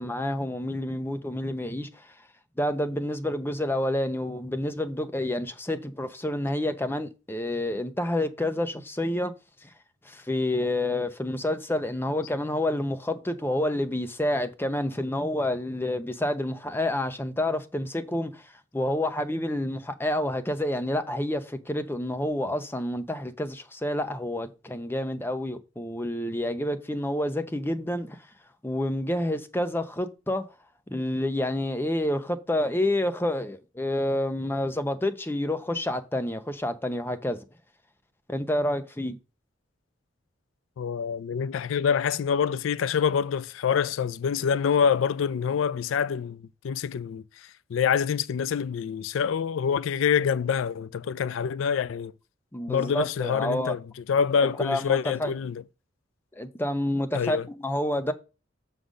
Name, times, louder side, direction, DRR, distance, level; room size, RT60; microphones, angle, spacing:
voice 1, 0.0-1.9 2.6-9.3 9.6-9.7 10.1-18.4 18.7-28.2 28.6-30.5 30.9-37.4 38.3-39.2 52.5-53.8 54.4-55.3 56.3-58.1, left 1 dB, 10° left, 0.8 m, -28 dB
voice 2, 40.8-47.2 47.7-52.1 52.7-53.8 54.1-55.6 57.1-57.5, left 7 dB, 85° left, 0.4 m, -26 dB
6.8 x 3.8 x 6.3 m
head